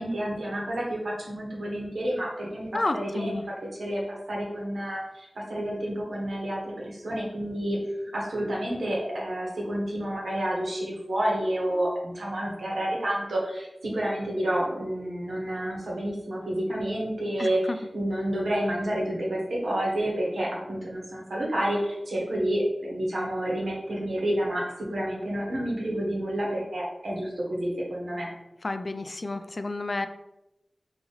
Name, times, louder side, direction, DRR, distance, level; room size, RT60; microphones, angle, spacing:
voice 1, 0.0-7.9 8.1-28.3, right 1 dB, 85° right, -3 dB, 1.3 m, -29 dB
voice 2, 2.7-3.4 17.4-17.8 28.6-30.1, left 2 dB, 50° left, 8 dB, 0.3 m, -31 dB
3.9 x 3.0 x 3.9 m, 0.94 s
wide cardioid pair, 70°, 0 cm